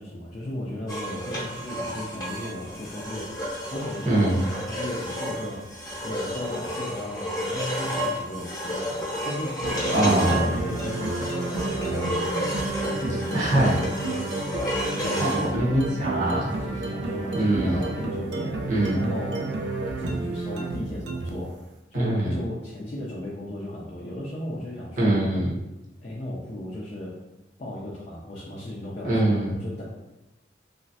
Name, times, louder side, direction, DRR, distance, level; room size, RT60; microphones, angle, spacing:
voice 1, 0.0-5.7 6.0-12.4 12.8-14.2 14.8-15.8 16.2-18.6 18.9-19.5 19.8-21.6 21.9-25.1 26.0-27.2 27.6-29.8, left 1 dB, 40° left, -5 dB, 0.4 m, -36 dB
sound 1, 0.9-15.5, equal, 20° left, 0.8 m, -31 dB
voice 2, 4.0-4.4 9.9-10.5 13.3-13.8 15.2-16.5 17.3-17.8 18.7-19.1 21.9-22.3 25.0-25.6 29.0-29.5, right 1 dB, 45° right, -5 dB, 0.8 m, -23 dB
sound 2, 9.6-21.5, right 2 dB, 75° right, 0.4 m, -31 dB
3.0 x 2.4 x 2.6 m, 1.0 s
head